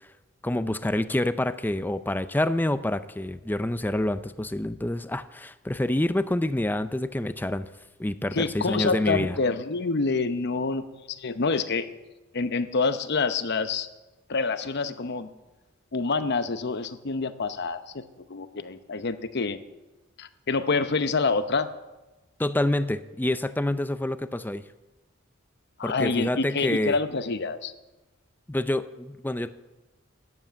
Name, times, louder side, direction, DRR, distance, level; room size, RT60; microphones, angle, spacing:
voice 1, 0.4-7.7 8.0-9.4 22.4-24.6 25.8-27.0 28.5-29.5, left 1 dB, 10° left, 13 dB, 0.5 m, -27 dB
voice 2, 8.3-11.9 12.3-13.9 14.3-15.3 15.9-18.0 18.3-19.6 20.2-21.7 25.8-27.7, left 4 dB, 55° left, 11 dB, 0.8 m, -27 dB
12.0 x 8.3 x 8.7 m, 1.1 s
head